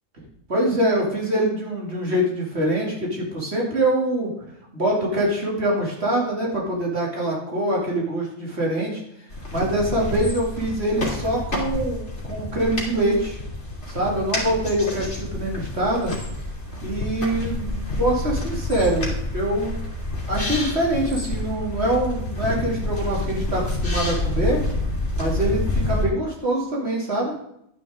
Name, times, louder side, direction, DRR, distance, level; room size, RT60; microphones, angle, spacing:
voice 1, 0.5-4.3 4.7-9.0 9.5-13.4 13.9-16.1 16.8-19.8 20.3-24.6 25.2-27.3, right 1 dB, 50° right, -2 dB, 3.0 m, -24 dB
sound 1, 9.3-26.1, left 2 dB, 55° left, 2.8 m, -28 dB
11.5 x 9.4 x 3.7 m, 0.77 s
omnidirectional pair, 1.5 m